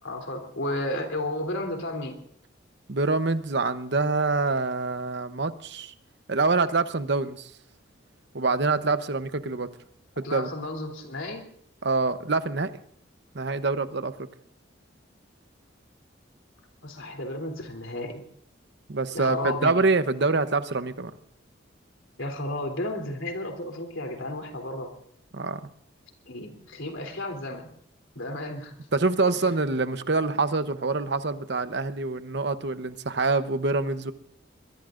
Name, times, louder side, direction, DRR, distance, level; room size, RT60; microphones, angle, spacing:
voice 1, 0.0-2.2 10.2-11.4 16.8-18.2 19.1-19.7 22.2-24.9 26.3-27.7 28.1-28.7, left 1 dB, 85° left, 3 dB, 3.2 m, -33 dB
voice 2, 2.9-5.9 6.3-7.5 8.3-9.7 10.2-10.5 11.8-12.7 13.3-14.1 18.9-21.1 25.3-25.6 28.9-34.1, right 3 dB, 60° right, 11 dB, 0.9 m, -25 dB
23.5 x 22.0 x 2.5 m, 0.69 s
head